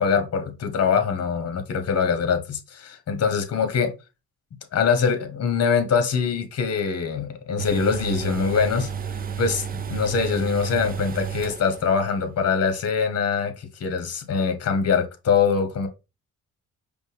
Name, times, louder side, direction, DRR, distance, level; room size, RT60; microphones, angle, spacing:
voice 1, 0.0-3.9 4.7-8.9 9.4-15.9, left 6 dB, 55° left, 1.1 m, -23 dB
sound 1, 7.6-12.0 12.3-12.4, right 7 dB, 30° right, 0.4 m, -31 dB
5.2 x 2.3 x 3.4 m
cardioid pair, 90°, 30 cm